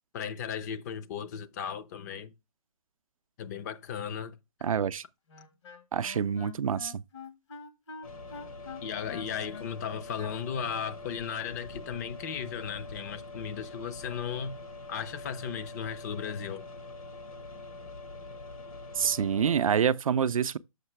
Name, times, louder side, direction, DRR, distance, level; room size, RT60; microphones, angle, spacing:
voice 1, 0.1-2.3 3.4-4.4 8.8-14.5 14.9-16.7, left 7 dB, 30° left, 0.6 m, -36 dB
voice 2, 4.6-5.0 5.9-7.0 19.0-20.6, right 7 dB, 70° right, 0.5 m, -27 dB
Wind instrument woodwind instrument, 5.3-10.9, left 5 dB, 50° left, 1.1 m, -46 dB
sound 1, 8.0-19.8, left 2 dB, 70° left, 1.7 m, -44 dB
6.6 x 5.5 x 3.2 m
hypercardioid pair, 140°, 18 cm